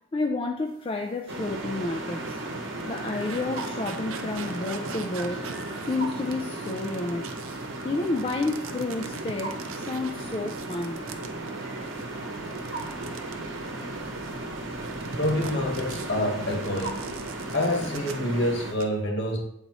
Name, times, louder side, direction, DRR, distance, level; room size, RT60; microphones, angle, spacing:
voice 1, 0.1-2.4 2.9-5.6 5.9-7.3 7.8-11.0, left 3 dB, 25° left, 0.3 m, -30 dB
sound 1, 1.3-18.7, right 2 dB, 60° right, 1.0 m, -35 dB
sound 2, 1.4-1.6 2.1-14.4 14.8-18.4 18.6-18.8, right 5 dB, 85° right, 0.6 m, -43 dB
voice 2, 15.1-17.1 17.5-19.4, left 1 dB, 60° left, 1.3 m, -27 dB
8.1 x 4.0 x 2.9 m
head